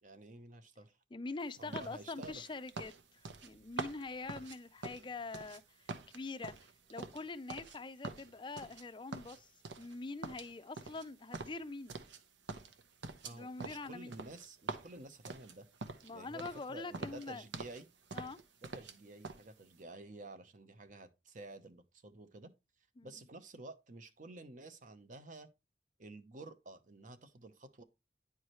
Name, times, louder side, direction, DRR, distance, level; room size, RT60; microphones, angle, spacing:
voice 1, 0.0-1.0 1.6-2.4 13.2-15.7 16.1-17.9 18.6-22.5 23.0-25.5 26.0-27.8, right 2 dB, 45° right, 0.8 m, -51 dB
voice 2, 1.1-9.5 9.8-12.0 13.3-14.2 16.0-17.4 18.1-18.4 23.0-23.1, left 3 dB, 25° left, 0.4 m, -44 dB
sound 1, 1.7-5.6 5.9-7.8 8.0-8.8 9.1-10.0 10.2-12.2 12.5-16.1 16.4-16.7 16.9-17.8 18.1-19.0 19.2-19.4, right 3 dB, 85° right, 0.8 m, -45 dB
9.7 x 4.8 x 3.0 m
head